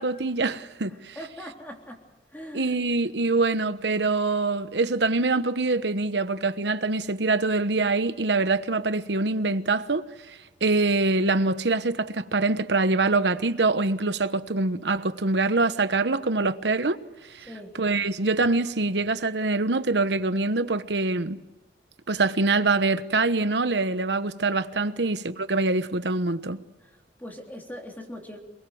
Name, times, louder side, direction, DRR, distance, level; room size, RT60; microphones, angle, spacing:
voice 1, 0.0-1.2 2.5-17.5 17.8-21.4 22.1-26.6, right 3 dB, 85° right, 1.1 m, -24 dB
voice 2, 0.9-2.0 2.3-2.8 17.5-17.8 24.9-25.0 26.8-28.4, equal, 10° left, 3.5 m, -41 dB
28.0 x 20.5 x 7.9 m
head